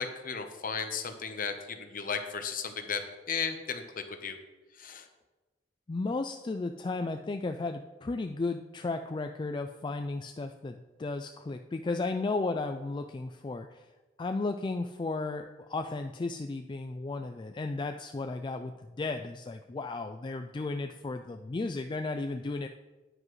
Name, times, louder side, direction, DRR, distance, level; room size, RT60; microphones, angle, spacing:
voice 1, 0.0-4.4 4.7-5.1, left 6 dB, 50° left, 7 dB, 0.9 m, -35 dB
voice 2, 5.9-13.9 14.2-22.7, left 3 dB, 25° left, 6 dB, 0.3 m, -34 dB
9.8 x 9.7 x 3.2 m, 1.2 s
head